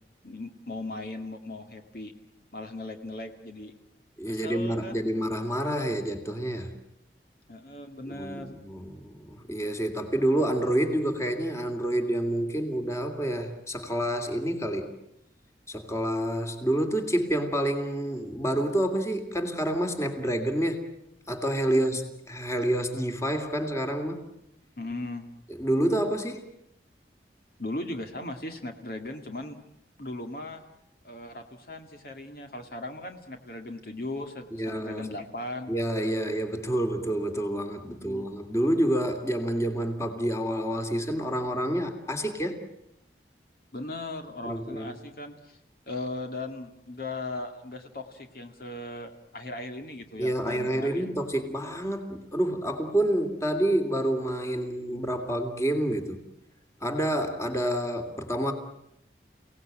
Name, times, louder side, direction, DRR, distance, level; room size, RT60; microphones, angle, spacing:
voice 1, 0.2-2.1 2.5-3.7 4.3-5.1 7.5-8.6 21.7-21.8 24.8-25.3 27.6-29.6 30.0-30.6 31.0-35.8 37.9-38.3 43.7-45.6 45.9-51.2, left 2 dB, 55° left, 5 dB, 2.2 m, -38 dB
voice 2, 4.2-6.7 8.1-15.0 15.7-20.9 21.3-22.0 22.3-24.3 25.6-26.4 34.5-35.1 35.7-42.6 44.4-45.0 50.2-56.2 56.8-58.5, right 1 dB, 15° left, 6 dB, 2.8 m, -28 dB
30.0 x 18.0 x 9.1 m, 0.82 s
head